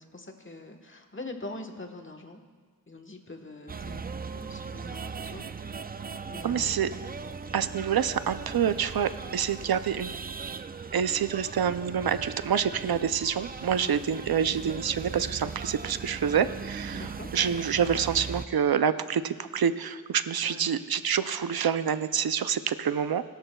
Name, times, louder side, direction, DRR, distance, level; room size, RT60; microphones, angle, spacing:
voice 1, 0.0-2.4 2.9-4.1 4.3-5.8 6.3-7.0 9.2-9.4 13.8-14.0 16.9-17.3 20.4-20.7, left 2 dB, 35° left, 4 dB, 1.3 m, -43 dB
sound 1, 3.7-18.5, right 5 dB, 25° right, 0.3 m, -39 dB
voice 2, 6.4-6.9 7.5-10.1 10.9-23.2, right 8 dB, 80° right, 12 dB, 0.6 m, -27 dB
21.0 x 12.5 x 2.3 m, 1.5 s
wide cardioid pair, 65°, 36 cm